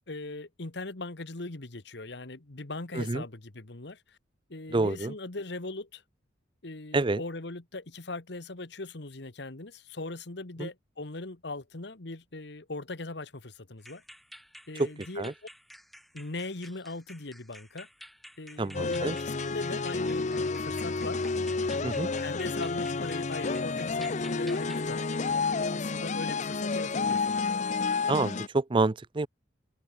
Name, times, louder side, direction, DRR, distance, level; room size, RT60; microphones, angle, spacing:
voice 1, 0.0-4.2 4.5-6.0 6.6-14.0 14.7-15.3 16.1-17.9 18.4-21.2 21.7-25.1 25.5-27.4, left 2 dB, 65° left, 1.6 m, -40 dB
voice 2, 4.7-5.1 6.9-7.2 10.6-10.7 14.8-14.9 15.2-15.3 18.6-19.2 21.8-22.1 28.1-29.3, right 3 dB, 25° right, 0.5 m, -28 dB
sound 1, 13.8-24.9, equal, ahead, 4.7 m, -52 dB
sound 2, 18.7-28.5, left 4 dB, 40° left, 0.7 m, -30 dB
open air
head